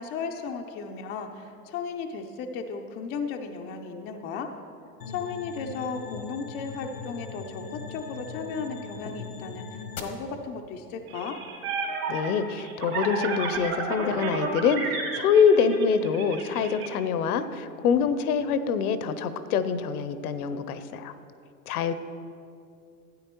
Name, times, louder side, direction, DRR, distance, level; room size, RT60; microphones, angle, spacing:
voice 1, 0.0-4.5 5.1-11.4, left 5 dB, 25° left, 4 dB, 0.4 m, -35 dB
sound 1, 5.0-10.0, left 5 dB, 90° left, 1.1 m, -40 dB
sound 2, 11.1-16.9, right 4 dB, 60° right, 2.5 m, -32 dB
voice 2, 12.1-21.1 21.7-21.9, left 6 dB, 65° left, 12 dB, 0.7 m, -25 dB
12.5 x 8.9 x 3.0 m, 2.6 s
hypercardioid pair, 105°, 48 cm